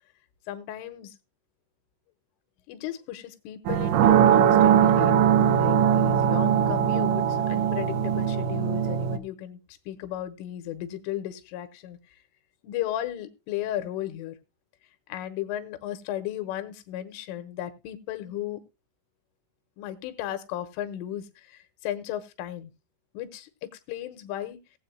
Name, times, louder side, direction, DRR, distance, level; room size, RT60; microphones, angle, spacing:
voice 1, 0.5-1.1 2.7-5.1 5.5-9.6 9.9-12.0 12.6-14.4 15.1-18.6 19.8-22.7 23.1-24.6, left 12 dB, 85° left, 9 dB, 3.4 m, -35 dB
sound 1, 3.7-9.2, right 9 dB, 80° right, 2.8 m, -21 dB
19.0 x 7.8 x 2.2 m, 0.26 s
omnidirectional pair, 5.7 m